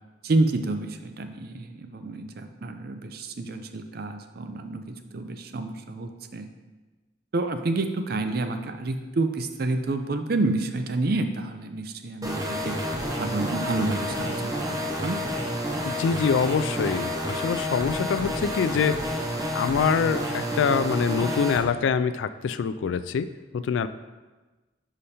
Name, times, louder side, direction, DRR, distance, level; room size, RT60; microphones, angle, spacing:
voice 1, 0.2-6.5 7.3-12.8 13.2-14.4 15.0-15.2, right 2 dB, 55° right, 7 dB, 0.5 m, -29 dB
sound 1, 12.2-21.6, equal, 20° right, 0.7 m, -29 dB
voice 2, 15.8-19.0 19.5-23.9, left 6 dB, 85° left, 13 dB, 0.3 m, -25 dB
5.5 x 5.0 x 4.2 m, 1.2 s
head